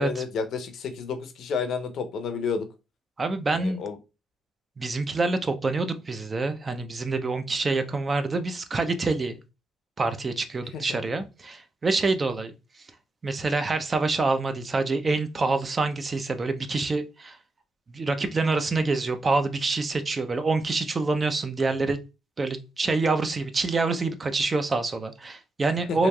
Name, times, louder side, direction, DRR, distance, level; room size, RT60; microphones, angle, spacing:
voice 1, 0.0-2.6 3.5-3.9 10.7-11.0 25.9-26.1, left 5 dB, 65° left, 0.5 m, -31 dB
voice 2, 3.2-3.8 4.8-9.4 10.0-12.5 13.2-17.4 17.9-22.0 22.4-26.1, right 3 dB, 35° right, 0.5 m, -26 dB
3.0 x 2.5 x 2.3 m
supercardioid pair, 65°, 0 cm